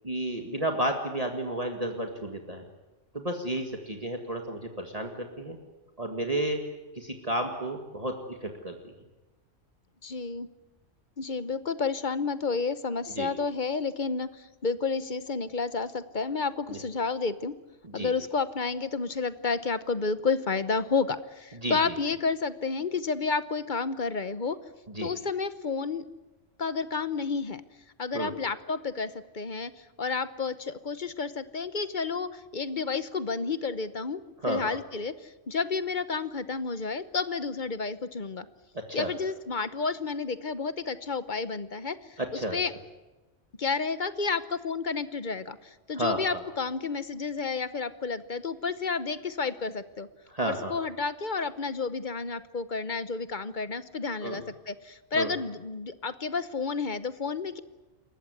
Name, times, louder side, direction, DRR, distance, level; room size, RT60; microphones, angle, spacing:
voice 1, 0.0-2.6 3.1-5.6 6.0-6.6 7.0-8.9 13.2-13.3 16.7-16.8 17.9-18.1 21.6-21.9 25.0-25.1 28.1-28.3 34.4-34.8 38.7-39.1 42.2-42.6 46.0-46.4 50.3-50.7 54.2-54.4 55.1-55.3, right 1 dB, 30° right, 3 dB, 2.0 m, -32 dB
voice 2, 10.0-10.5 11.2-17.5 17.9-24.6 25.0-26.0 26.6-27.6 28.0-34.2 34.5-38.5 38.9-42.7 43.6-50.1 50.4-57.6, left 4 dB, 45° left, 13 dB, 1.0 m, -31 dB
27.5 x 14.5 x 9.7 m, 1.1 s
omnidirectional pair, 1.2 m